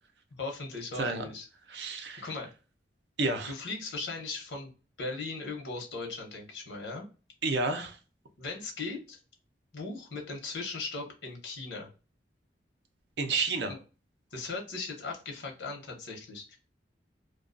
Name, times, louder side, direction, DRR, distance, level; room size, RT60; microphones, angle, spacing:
voice 1, 0.4-1.5 2.2-2.5 3.5-4.7 5.0-7.0 8.4-9.2 9.7-11.9 14.3-16.6, left 3 dB, 85° left, 2 dB, 0.8 m, -38 dB
voice 2, 1.7-2.3 3.2-3.5 7.4-8.0 13.2-13.7, right 3 dB, 70° right, 6 dB, 0.5 m, -30 dB
2.3 x 2.3 x 2.4 m, 0.34 s
head